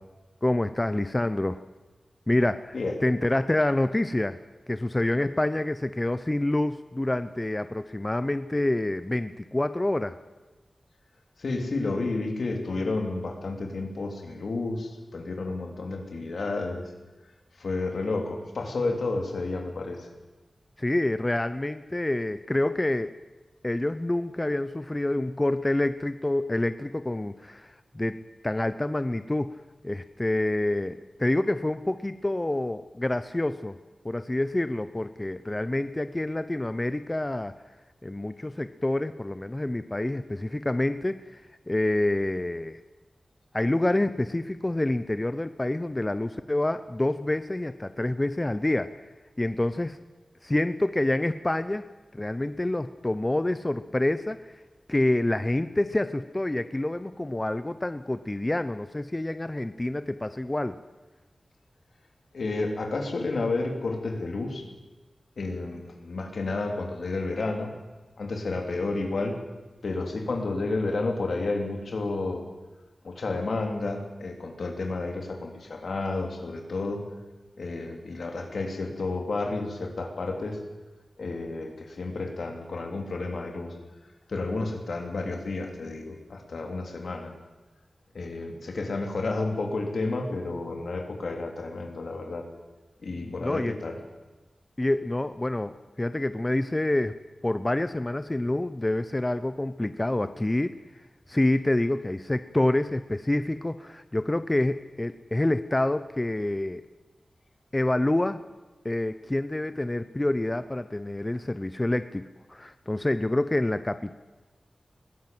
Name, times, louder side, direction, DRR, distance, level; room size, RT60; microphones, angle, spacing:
voice 1, 0.4-1.6 2.3-2.8 3.0-4.4 4.7-10.2 20.8-23.2 23.6-28.2 28.4-29.5 29.8-33.8 34.0-37.5 38.0-42.8 43.5-48.9 49.4-50.0 50.4-51.8 52.1-54.5 54.9-60.8 93.2-93.8 94.8-97.1 97.4-100.7 101.3-106.8 107.7-108.4 108.8-114.1, left 1 dB, 20° left, 12 dB, 0.7 m, -27 dB
voice 2, 11.4-16.9 17.6-20.1 62.3-64.7 65.4-67.7 68.2-69.4 69.8-72.4 73.0-77.1 77.6-80.6 81.2-83.8 84.3-87.3 88.1-92.5 93.0-94.0, left 3 dB, 75° left, 3 dB, 3.6 m, -31 dB
21.0 x 16.5 x 7.9 m, 1.2 s
wide cardioid pair, 110°, 0 cm